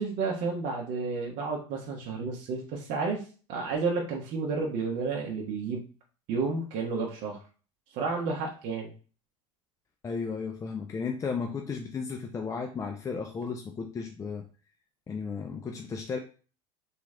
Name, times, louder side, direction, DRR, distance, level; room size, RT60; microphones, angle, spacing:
voice 1, 0.0-3.2 3.5-5.8 6.3-7.4 7.9-8.9, right 4 dB, 60° right, -1 dB, 1.0 m, -31 dB
voice 2, 10.0-14.4 15.1-16.2, left 5 dB, 20° left, 3 dB, 0.5 m, -34 dB
3.2 x 3.0 x 3.7 m, 0.38 s
supercardioid pair, 105°, 16 cm